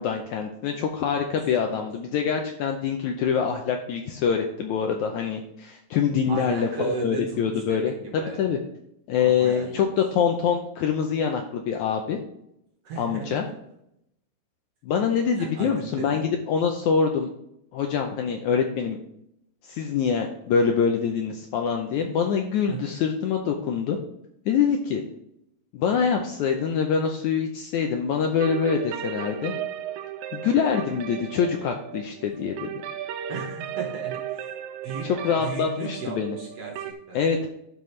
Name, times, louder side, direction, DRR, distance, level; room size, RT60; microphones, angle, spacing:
voice 1, 0.0-8.6 9.1-12.2 13.0-13.5 14.8-17.3 17.7-19.0 19.7-24.0 24.5-25.0 25.7-29.5 30.3-32.7 35.0-36.4 37.1-37.5, left 6 dB, 75° left, 3 dB, 1.8 m, -25 dB
voice 2, 6.3-8.5 9.2-9.9 12.8-13.6 15.4-16.4 22.7-22.9 33.3-34.5 34.8-37.2, right 4 dB, 60° right, 1 dB, 1.8 m, -36 dB
sound 1, 28.4-36.9, right 9 dB, 90° right, 2.4 m, -35 dB
11.5 x 5.4 x 3.2 m, 0.77 s
omnidirectional pair, 4.1 m